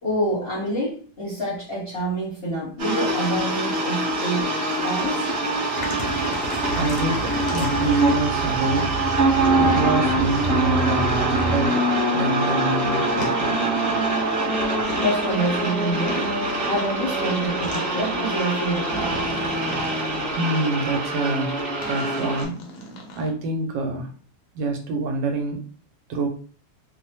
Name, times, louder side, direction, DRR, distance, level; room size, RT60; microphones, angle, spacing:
voice 1, 0.0-4.5 4.8-5.3 15.0-16.2 16.6-19.1, right 1 dB, 45° left, -5 dB, 0.9 m, -27 dB
sound 1, 2.8-22.4, right 2 dB, 40° right, 1.1 m, -24 dB
sound 2, 5.8-8.2 9.6-9.8 11.3-11.6 13.2-13.3 14.6-15.0 16.1-16.3 17.6-17.8 18.9-20.6 21.8-23.3, equal, 70° left, 1.1 m, -35 dB
sound 3, 6.7-11.7, right 2 dB, 90° left, 1.3 m, -30 dB
voice 2, 6.7-8.9 9.6-11.9 12.1-13.7 19.8-20.0 20.3-21.6 21.9-22.7 23.1-24.1 24.5-25.7 26.1-26.3, right 3 dB, 80° right, 4 dB, 1.3 m, -26 dB
3.1 x 2.0 x 2.7 m, 0.41 s
omnidirectional pair, 2.0 m